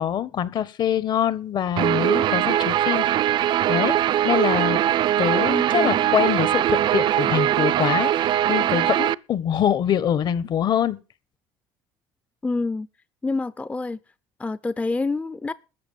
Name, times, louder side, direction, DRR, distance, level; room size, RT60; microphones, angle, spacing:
voice 1, 0.0-3.1 3.7-3.9 4.2-4.8 5.2-11.0, left 9 dB, 50° left, 1.4 m, -24 dB
Guitar, 1.8-9.1, right 12 dB, 55° right, 0.6 m, -21 dB
voice 2, 5.5-6.0 12.4-12.9 13.2-14.0 14.4-15.5, left 3 dB, 15° left, 0.6 m, -27 dB
13.5 x 8.4 x 7.3 m
supercardioid pair, 85°, 9 cm